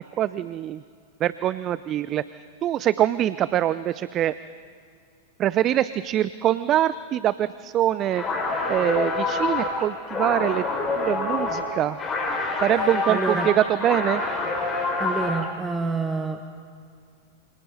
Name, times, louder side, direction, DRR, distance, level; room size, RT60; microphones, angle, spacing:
voice 1, 0.2-0.8 1.2-2.2 2.6-4.3 5.4-8.2 8.7-10.6 11.0-12.0 12.6-14.2, right 12 dB, 35° right, 16 dB, 0.5 m, -24 dB
sound 1, 8.1-15.5, left 3 dB, 25° left, 5.7 m, -27 dB
voice 2, 12.8-13.5 15.0-16.6, right 4 dB, 10° right, 6 dB, 1.2 m, -28 dB
28.5 x 28.5 x 4.1 m, 2.3 s
figure-of-eight pair, 95°, 0 cm